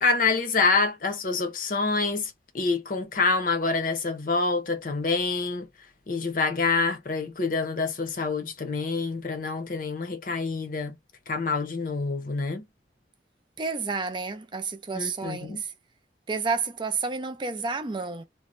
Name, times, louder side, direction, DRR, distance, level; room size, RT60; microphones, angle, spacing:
voice 1, 0.0-5.7 6.1-11.0 11.3-12.6 14.9-15.6, left 4 dB, 50° left, 0.7 m, -26 dB
voice 2, 13.6-15.7 16.3-18.2, right 4 dB, 25° right, 0.4 m, -30 dB
2.6 x 2.1 x 3.0 m
head